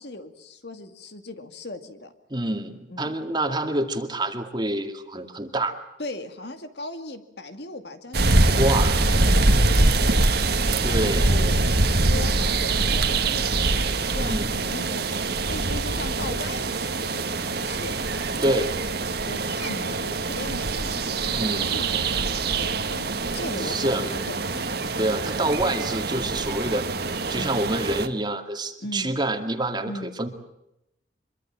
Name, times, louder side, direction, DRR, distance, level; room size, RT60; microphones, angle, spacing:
voice 1, 0.0-2.1 2.9-3.1 6.0-10.3 10.9-11.6 12.0-18.7 19.2-23.1 23.3-24.7 27.3-27.6 28.8-29.1 29.9-30.2, left 2 dB, 60° left, 8 dB, 2.3 m, -38 dB
voice 2, 2.3-5.8 8.6-9.0 10.8-11.2 14.2-14.5 18.4-18.7 21.2-21.7 23.6-24.1 25.0-26.9 27.3-30.3, right 1 dB, 25° right, 6 dB, 2.2 m, -27 dB
sound 1, 8.1-28.1, right 2 dB, 55° right, 1.8 m, -24 dB
25.0 x 23.5 x 7.5 m, 0.87 s
head